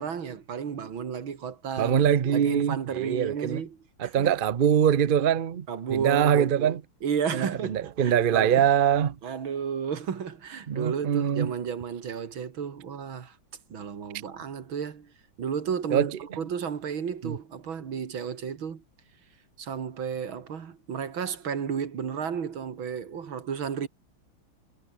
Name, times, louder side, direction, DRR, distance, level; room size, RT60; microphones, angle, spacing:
voice 1, 0.0-2.0 2.3-4.3 5.7-8.6 9.2-13.4 13.7-15.1 15.4-18.8 19.6-23.9, right 7 dB, 85° right, 2.9 m, -33 dB
voice 2, 1.8-3.6 4.0-6.8 7.3-9.2 10.7-11.5 15.9-16.2 17.2-17.4, right 9 dB, 70° right, 0.5 m, -23 dB
omnidirectional pair, 2.1 m